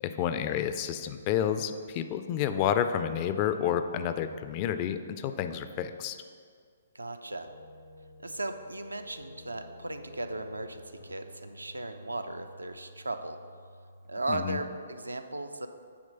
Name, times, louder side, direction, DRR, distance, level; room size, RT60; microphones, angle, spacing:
voice 1, 0.0-6.2 14.3-14.6, left 9 dB, 30° left, 10 dB, 0.3 m, -30 dB
voice 2, 6.9-7.5 8.2-13.4 14.1-15.7, right 2 dB, 80° right, 8 dB, 0.4 m, -36 dB
sound 1, 7.5-14.4, left 1 dB, 85° left, 1.0 m, -51 dB
8.6 x 3.2 x 5.3 m, 2.1 s
figure-of-eight pair, 130°, 0 cm